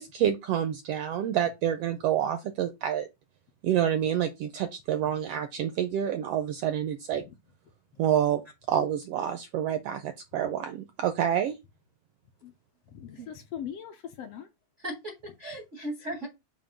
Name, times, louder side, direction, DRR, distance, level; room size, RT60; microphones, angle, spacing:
voice 1, 0.0-3.1 3.6-7.2 8.0-8.4 8.7-11.6, right 10 dB, 80° right, 1.4 m, -28 dB
voice 2, 12.9-14.5 16.2-16.3, left 9 dB, 70° left, 1.6 m, -40 dB
voice 3, 14.8-16.3, right 1 dB, 65° right, 0.7 m, -37 dB
7.5 x 2.6 x 5.1 m
omnidirectional pair, 3.3 m